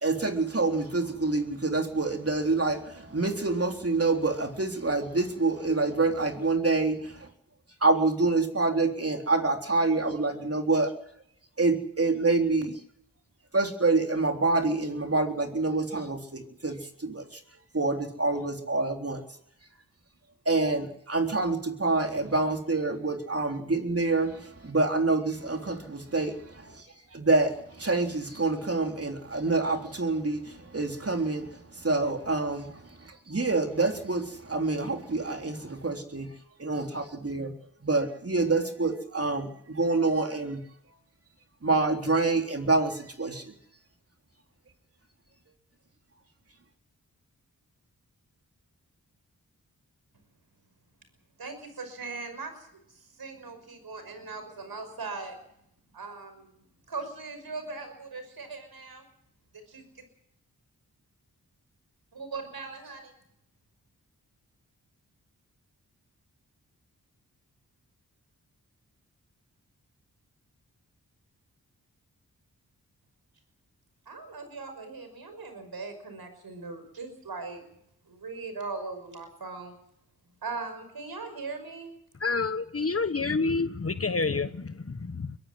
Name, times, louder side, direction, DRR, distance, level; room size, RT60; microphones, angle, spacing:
voice 1, 0.0-7.3 7.8-10.9 11.6-12.7 13.5-17.4 17.7-19.2 20.5-26.8 27.1-32.7 33.0-36.3 36.6-37.5 37.8-40.6 41.6-43.4, right 3 dB, 40° right, 3.7 m, -27 dB
voice 2, 51.4-55.4 55.9-56.5 56.9-59.0 59.5-60.0 62.1-63.1 74.1-77.6 78.1-79.7 80.4-81.9, right 4 dB, 80° right, 5.8 m, -39 dB
voice 3, 82.2-85.4, left 4 dB, 40° left, 1.2 m, -28 dB
22.5 x 12.5 x 9.7 m
cardioid pair, 45°, 36 cm